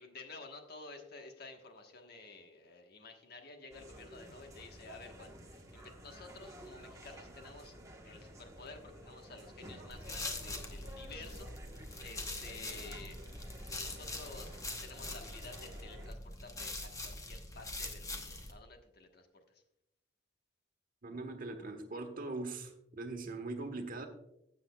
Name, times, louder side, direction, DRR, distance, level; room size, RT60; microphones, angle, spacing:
voice 1, 0.0-7.7 8.0-13.1 13.8-14.5 14.8-19.4, left 3 dB, 55° left, 1.3 m, -52 dB
sound 1, 3.7-16.1, right 1 dB, 20° right, 1.2 m, -52 dB
sound 2, 9.9-18.5, left 2 dB, 20° left, 0.9 m, -43 dB
voice 2, 21.0-24.1, right 2 dB, 50° right, 1.2 m, -41 dB
15.5 x 7.7 x 2.3 m
head